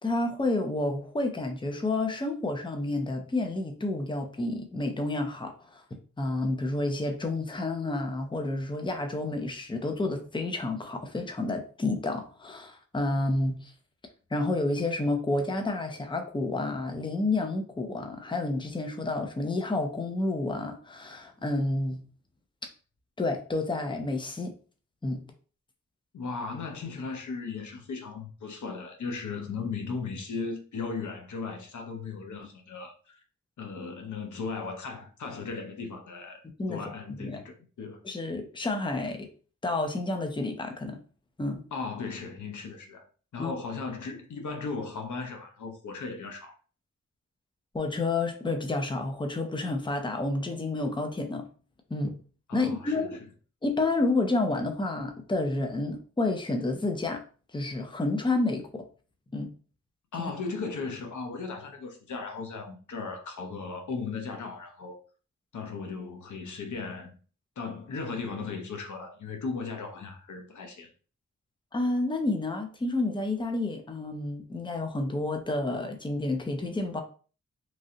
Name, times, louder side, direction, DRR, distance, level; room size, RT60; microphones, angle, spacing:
voice 1, 0.0-5.8 6.2-13.7 14.3-22.0 23.2-24.5 25.0-25.2 36.6-36.8 37.1-37.4 38.0-39.3 39.6-41.0 41.4-41.6 43.4-43.5 47.7-51.5 51.9-52.1 52.5-53.2 53.6-57.2 57.5-58.8 59.3-59.5 60.2-60.3 71.7-77.0, left 2 dB, 15° left, 0.6 m, -30 dB
voice 2, 26.1-33.2 33.6-36.4 36.7-38.0 41.7-43.0 43.3-46.5 52.5-53.1 60.1-65.0 65.5-67.1 67.6-70.9, left 4 dB, 85° left, 0.7 m, -37 dB
3.0 x 2.6 x 2.7 m
cardioid pair, 65°, 29 cm